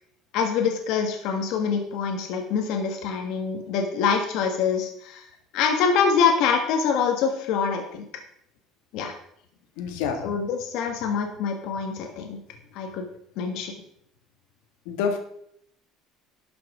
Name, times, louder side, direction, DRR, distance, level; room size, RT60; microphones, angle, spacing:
voice 1, 0.3-5.2 5.5-8.0 8.9-9.1 10.2-12.4 12.7-13.0 13.4-13.7, left 6 dB, 60° left, 3 dB, 1.5 m, -25 dB
voice 2, 9.8-10.2 14.9-15.2, left 6 dB, 90° left, 5 dB, 1.7 m, -27 dB
11.5 x 6.0 x 4.9 m, 0.71 s
cardioid pair, 165°, 0 cm